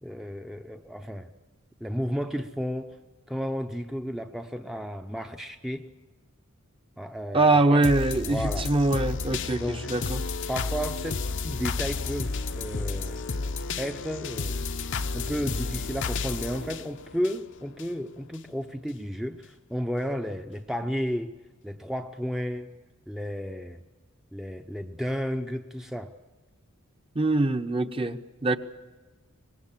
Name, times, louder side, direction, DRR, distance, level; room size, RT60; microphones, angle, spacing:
voice 1, 0.0-1.3 1.8-3.0 3.3-5.9 7.0-8.7 9.6-9.9 10.5-13.2 13.8-14.6 15.1-21.4 21.6-22.7 23.1-23.8 24.3-26.1, equal, ahead, 5 dB, 0.7 m, -33 dB
voice 2, 7.3-9.6 9.9-10.2 27.1-28.6, right 2 dB, 25° right, 8 dB, 0.9 m, -23 dB
sound 1, 7.8-17.9 18.3-18.4, left 4 dB, 60° left, 0.7 m, -32 dB
25.0 x 20.0 x 7.4 m, 1.2 s
head